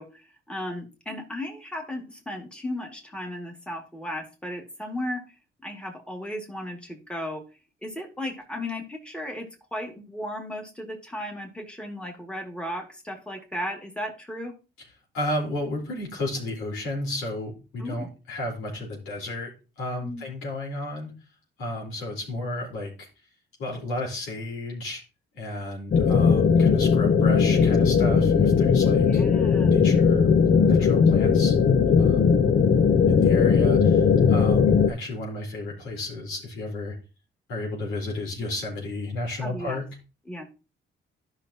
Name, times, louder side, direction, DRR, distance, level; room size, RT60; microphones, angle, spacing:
voice 1, 0.0-5.2 5.6-7.4 7.8-14.5 17.8-18.1 20.0-20.2 29.0-29.8 39.4-39.8 40.3-40.4, left 1 dB, 5° left, 1 dB, 2.3 m, -35 dB
voice 2, 15.1-19.5 19.8-21.1 21.6-23.1 23.6-25.0 25.3-29.2 29.6-30.3 30.6-31.6 32.0-32.3 33.1-37.0 37.5-39.9, left 1 dB, 85° left, -1 dB, 4.1 m, -32 dB
sound 1, 25.9-34.9, left 6 dB, 45° left, 0.8 m, -19 dB
12.5 x 5.8 x 2.8 m, 0.32 s
cardioid pair, 90°, 20 cm